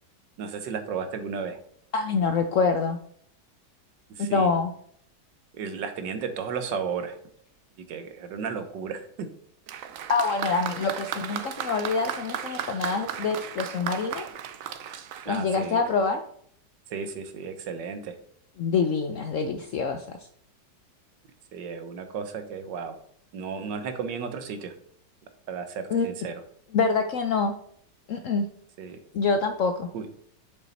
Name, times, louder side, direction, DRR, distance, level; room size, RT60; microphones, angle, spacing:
voice 1, 0.4-1.6 4.2-4.5 5.5-7.2 7.9-9.0 12.7-12.8 15.2-15.8 16.9-18.1 21.5-22.9 23.3-24.7 25.5-26.3 28.8-29.0 29.9-30.1, right 6 dB, 80° right, 8 dB, 1.6 m, -33 dB
voice 2, 1.9-3.0 4.2-4.7 10.1-14.2 15.3-16.2 18.6-20.2 25.9-26.1 26.7-27.5 28.1-28.5 29.1-29.9, left 4 dB, 70° left, 7 dB, 0.7 m, -25 dB
Applause, 9.7-16.1, right 9 dB, 65° right, 0.9 m, -35 dB
6.9 x 6.2 x 4.2 m, 0.64 s
omnidirectional pair, 1.9 m